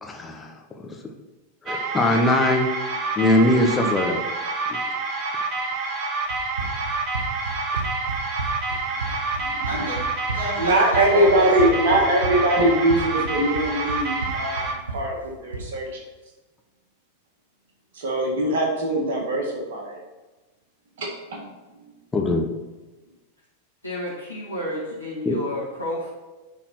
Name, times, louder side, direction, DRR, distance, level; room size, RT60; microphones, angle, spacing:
voice 1, 0.0-0.5 1.6-2.7 3.2-4.2 4.7-4.8 22.1-22.5 25.2-25.3, left 1 dB, 15° left, 2 dB, 1.1 m, -21 dB
sound 1, 1.7-14.7, right 3 dB, 40° right, 1.1 m, -28 dB
Run, 6.3-15.7, right 3 dB, 80° right, 1.0 m, -33 dB
voice 2, 9.6-10.0 10.3-12.1 23.8-26.1, equal, 85° left, -7 dB, 2.1 m, -30 dB
voice 3, 10.6-14.7 14.9-16.0 18.0-20.0 21.0-21.4, right 1 dB, 60° right, 0 dB, 2.0 m, -22 dB
9.9 x 4.1 x 4.5 m, 1.2 s
figure-of-eight pair, 90°, 0 cm